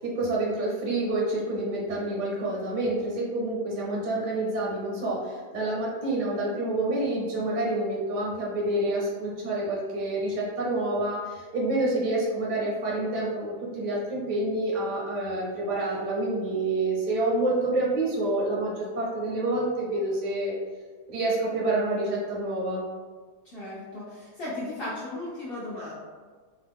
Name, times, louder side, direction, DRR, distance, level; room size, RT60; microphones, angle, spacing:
voice 1, 0.0-20.5 21.1-22.8, right 2 dB, 45° right, -4 dB, 0.6 m, -28 dB
voice 2, 23.4-25.9, left 1 dB, 60° left, -8 dB, 0.6 m, -36 dB
2.9 x 2.2 x 3.5 m, 1.5 s
omnidirectional pair, 1.7 m